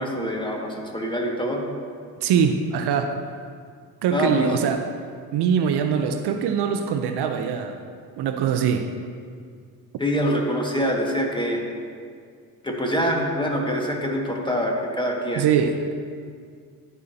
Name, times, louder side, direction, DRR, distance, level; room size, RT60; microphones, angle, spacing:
voice 1, 0.0-1.6 4.1-4.6 10.0-11.6 12.6-15.4, equal, 10° left, -1 dB, 1.8 m, -25 dB
voice 2, 2.2-3.2 4.0-4.9 5.3-7.8 8.2-8.9 15.4-15.9, right 7 dB, 55° right, 7 dB, 0.7 m, -22 dB
13.5 x 5.6 x 2.8 m, 2.1 s
hypercardioid pair, 50°, 48 cm